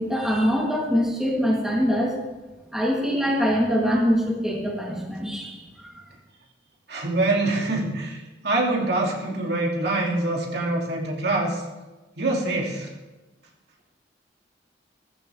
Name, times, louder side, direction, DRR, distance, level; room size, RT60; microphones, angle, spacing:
voice 1, 0.0-2.2 2.7-5.9, equal, 5° right, -4 dB, 3.0 m, -23 dB
voice 2, 6.9-11.6 12.2-12.9, right 2 dB, 60° right, -2 dB, 2.9 m, -25 dB
16.0 x 14.5 x 3.5 m, 1.1 s
head